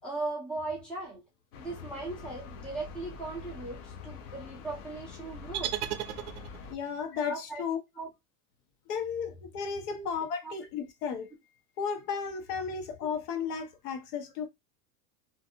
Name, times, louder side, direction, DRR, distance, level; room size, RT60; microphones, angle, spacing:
voice 1, 0.0-1.2 1.5-5.8 7.1-7.6 8.0-8.1 9.9-10.1 10.4-10.5 13.0-13.1, right 2 dB, ahead, 0.4 m, -38 dB
sound 1, 1.5-6.7, left 5 dB, 55° left, 0.6 m, -45 dB
sound 2, 5.5-6.8, right 13 dB, 65° right, 0.6 m, -35 dB
voice 2, 6.7-7.8 8.9-11.3 11.8-14.5, left 6 dB, 75° left, 1.0 m, -34 dB
2.5 x 2.4 x 2.6 m
supercardioid pair, 155°, 47 cm